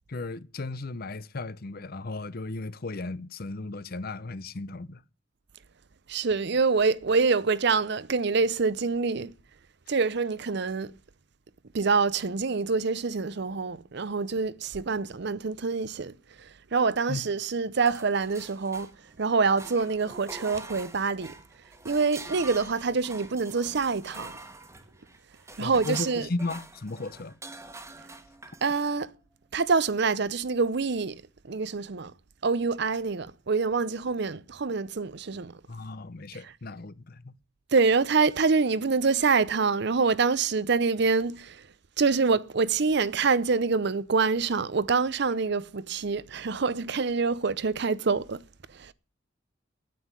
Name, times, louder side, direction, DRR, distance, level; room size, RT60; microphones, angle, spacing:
voice 1, 0.1-5.0 17.1-17.2 25.6-27.4 35.7-37.4, left 3 dB, 50° left, 0.7 m, -35 dB
voice 2, 6.1-9.3 9.9-10.9 11.7-18.9 19.2-21.4 21.8-24.4 25.6-26.3 28.6-29.1 29.5-32.1 32.4-35.5 37.7-41.7 42.0-48.4 48.7-48.9, right 4 dB, 60° right, 0.7 m, -26 dB
sound 1, 17.9-19.2 19.5-28.9, right 2 dB, 15° right, 1.4 m, -45 dB
9.4 x 9.3 x 9.5 m
head